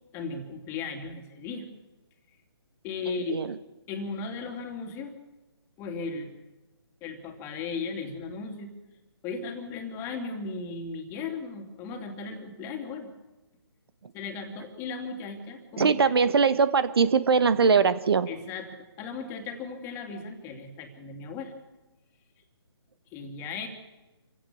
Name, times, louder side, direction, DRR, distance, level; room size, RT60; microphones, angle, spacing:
voice 1, 0.1-1.7 2.8-3.4 3.9-5.2 5.8-6.3 7.0-8.7 9.2-13.1 14.1-16.0 18.3-21.5 23.1-23.7, left 4 dB, 20° left, 5 dB, 2.9 m, -36 dB
voice 2, 3.1-3.6 15.8-18.3, right 5 dB, 60° right, 12 dB, 1.4 m, -22 dB
27.5 x 16.5 x 7.1 m, 1.1 s
figure-of-eight pair, 150°, 14 cm